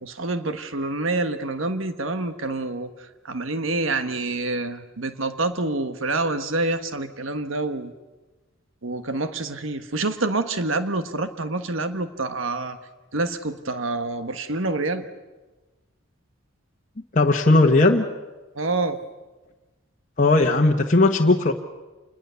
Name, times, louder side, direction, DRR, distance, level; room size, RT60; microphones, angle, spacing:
voice 1, 0.0-2.9 3.2-7.9 8.8-12.8 13.1-15.1 18.5-19.0, right 2 dB, 70° right, 9 dB, 1.4 m, -27 dB
voice 2, 17.1-18.0 20.2-21.5, left 2 dB, 40° left, 0 dB, 1.3 m, -17 dB
28.0 x 20.5 x 7.0 m, 1.2 s
head